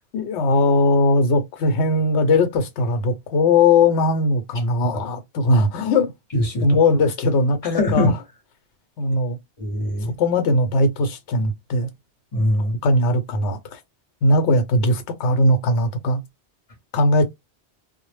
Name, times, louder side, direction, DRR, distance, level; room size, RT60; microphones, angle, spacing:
voice 1, 0.1-6.1 6.6-8.1 9.0-9.4 10.2-11.9 12.8-13.8 14.2-16.2 16.9-17.3, left 2 dB, 85° left, 0.9 m, -19 dB
voice 2, 6.3-6.7 7.6-8.1 9.6-10.1 12.3-12.8, left 1 dB, 35° left, 0.8 m, -22 dB
2.0 x 2.0 x 3.1 m
omnidirectional pair, 1.1 m